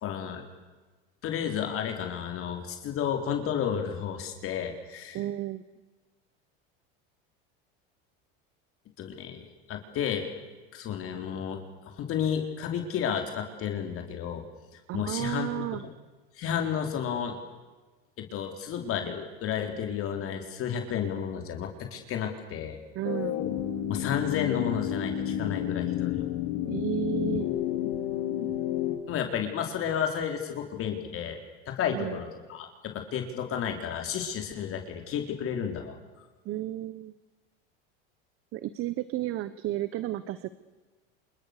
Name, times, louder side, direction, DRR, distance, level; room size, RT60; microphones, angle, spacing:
voice 1, 0.0-0.4 1.2-5.2 9.0-10.3 10.7-14.4 14.7-15.6 16.4-17.4 18.2-22.8 23.9-26.3 29.1-31.4 31.7-36.0, left 8 dB, 45° left, 4 dB, 4.0 m, -32 dB
voice 2, 5.1-5.6 14.9-15.8 22.9-23.4 26.6-27.5 31.9-32.2 36.4-37.1 38.5-40.5, right 13 dB, 45° right, 14 dB, 1.2 m, -32 dB
sound 1, 23.0-29.0, left 11 dB, 70° left, 4.7 m, -30 dB
28.5 x 26.5 x 6.8 m, 1.3 s
supercardioid pair, 115°, 30 cm